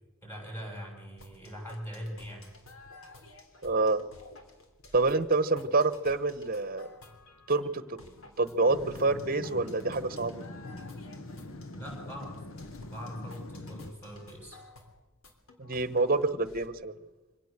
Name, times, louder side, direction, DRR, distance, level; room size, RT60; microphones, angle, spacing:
voice 1, 0.2-2.5 11.7-12.4 12.9-14.6, equal, 10° left, 0 dB, 7.0 m, -42 dB
sound 1, 1.2-16.7, left 2 dB, 90° left, 3.4 m, -53 dB
voice 2, 3.6-4.0 4.9-6.9 7.5-7.8 8.4-10.3 15.6-16.9, right 3 dB, 45° right, 14 dB, 1.0 m, -27 dB
sound 2, 8.7-13.9, left 2 dB, 70° left, 1.1 m, -43 dB
24.5 x 17.0 x 6.7 m, 1.2 s
head